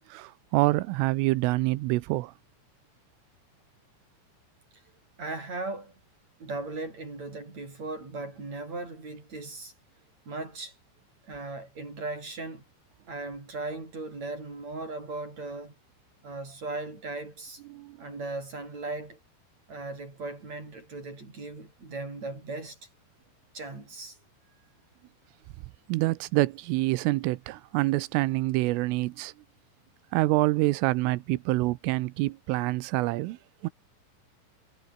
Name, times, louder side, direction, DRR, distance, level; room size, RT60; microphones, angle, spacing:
voice 1, 0.0-2.3 17.7-18.2 25.9-29.3 30.1-33.7, right 20 dB, 90° right, 3.4 m, -26 dB
voice 2, 5.2-6.0 6.4-9.7 10.3-10.8 11.2-12.6 13.1-15.7 16.2-17.6 18.0-19.2 19.7-22.9 23.5-24.2, right 2 dB, 35° right, 7.9 m, -37 dB
omnidirectional pair, 5.7 m